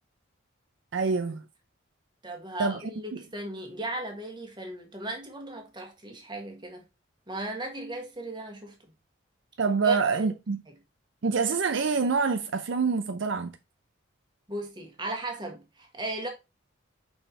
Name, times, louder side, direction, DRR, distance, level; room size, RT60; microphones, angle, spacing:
voice 1, 0.9-1.4 2.6-2.8 3.1-3.2 9.6-10.6 11.2-13.5, right 4 dB, 60° right, 0.5 m, -26 dB
voice 2, 2.2-6.8 7.3-8.7 9.8-10.3 14.5-16.3, right 2 dB, 20° right, 1.5 m, -36 dB
5.5 x 4.3 x 4.2 m
head